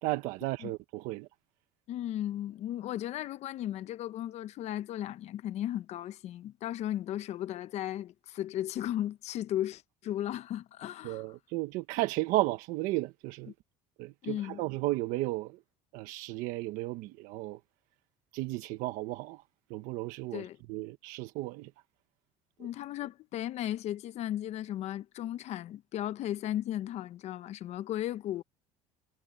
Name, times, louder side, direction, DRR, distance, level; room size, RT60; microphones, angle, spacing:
voice 1, 0.0-1.3 11.0-13.5 14.0-15.6 15.9-17.6 18.3-19.4 19.7-21.7 22.6-22.7, right 18 dB, 75° right, 1.2 m, -34 dB
voice 2, 1.9-11.2 14.2-14.6 20.3-20.6 22.6-28.4, left 12 dB, 55° left, 1.1 m, -35 dB
supercardioid pair, 110°, 13 cm